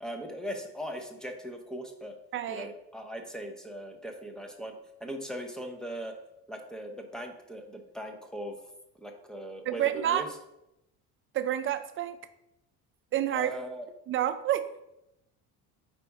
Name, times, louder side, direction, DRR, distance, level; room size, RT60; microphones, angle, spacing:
voice 1, 0.0-2.2 2.5-4.7 5.0-6.2 6.5-8.6 9.0-10.3 13.3-13.9, equal, ahead, 4 dB, 0.7 m, -39 dB
voice 2, 2.3-2.7 9.7-10.2 11.3-12.2 13.1-13.6 14.1-14.7, right 11 dB, 35° right, 11 dB, 0.4 m, -29 dB
5.1 x 4.1 x 4.6 m, 0.86 s
cardioid pair, 125°, 38 cm